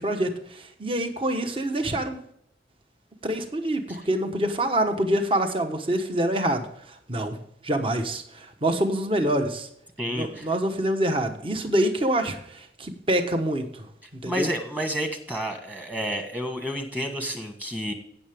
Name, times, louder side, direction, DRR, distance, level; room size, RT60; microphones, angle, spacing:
voice 1, 0.0-2.2 3.2-6.7 7.1-7.4 7.6-9.7 10.1-13.7 14.2-14.5, right 1 dB, 30° right, 6 dB, 1.2 m, -26 dB
voice 2, 10.0-10.5 14.2-17.9, equal, 10° right, 5 dB, 1.4 m, -30 dB
16.5 x 6.8 x 3.5 m, 0.73 s
head